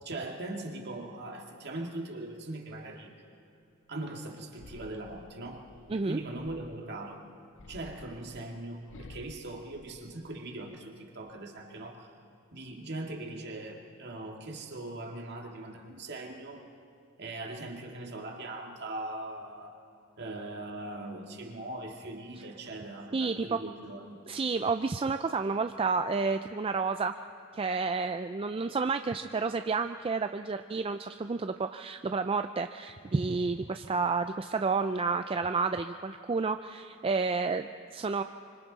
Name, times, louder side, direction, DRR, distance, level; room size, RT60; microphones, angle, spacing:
voice 1, 0.0-3.1 3.9-5.6 5.9-7.2 7.7-12.1 12.5-16.6 17.2-19.7 20.2-24.2, right 2 dB, 50° right, 1 dB, 2.1 m, -40 dB
short growls, 4.5-7.0 7.6-10.6 11.0-11.6, left 2 dB, 60° left, 0.7 m, -52 dB
voice 2, 5.9-6.2 23.1-23.6 24.3-27.1 27.5-38.2, right 4 dB, 25° right, 8 dB, 0.4 m, -30 dB
25.5 x 25.0 x 4.1 m, 2.6 s
head